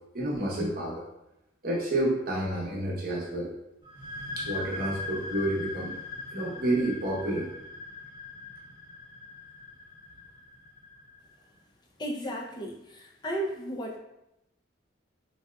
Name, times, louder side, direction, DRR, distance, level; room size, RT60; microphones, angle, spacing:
voice 1, 0.1-1.0 1.6-3.5 4.4-5.9 6.3-7.5, right 1 dB, 50° right, -4 dB, 0.8 m, -29 dB
sound 1, 3.8-11.3, left 3 dB, 25° right, 0.9 m, -40 dB
voice 2, 12.0-14.0, right 1 dB, 25° left, -1 dB, 0.4 m, -34 dB
3.3 x 2.8 x 2.2 m, 0.89 s
head